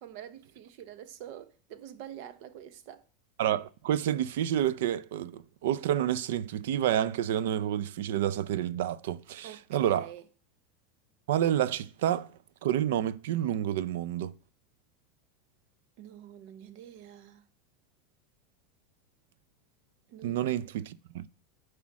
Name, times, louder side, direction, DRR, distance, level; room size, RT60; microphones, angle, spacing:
voice 1, 0.0-3.0 9.4-10.2 16.0-17.4 20.1-20.8, right 10 dB, 60° right, 1.0 m, -47 dB
voice 2, 3.4-10.1 11.3-12.3 12.6-14.3 20.2-21.3, right 11 dB, 85° right, 0.5 m, -29 dB
7.5 x 5.0 x 7.2 m
supercardioid pair, 145°, 0 cm